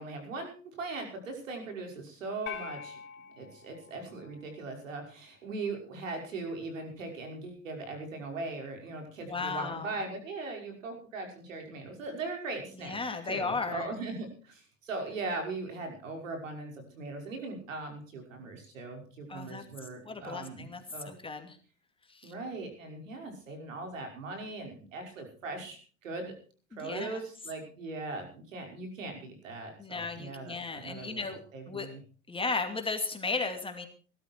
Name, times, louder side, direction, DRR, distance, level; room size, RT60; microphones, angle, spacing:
voice 1, 0.0-3.0 3.4-13.0 13.3-21.1 22.2-26.3 26.8-31.3 31.5-32.0, right 3 dB, 90° right, 4 dB, 5.7 m, -39 dB
sound 1, 2.5-4.9, left 7 dB, 30° left, 3.2 m, -45 dB
voice 2, 9.2-10.0 12.8-13.9 19.3-19.6 20.0-21.6 22.1-22.3 26.7-27.2 29.8-31.9 32.3-33.9, left 4 dB, 15° left, 5 dB, 2.6 m, -35 dB
19.5 x 12.5 x 4.6 m, 0.40 s
hypercardioid pair, 110°, 38 cm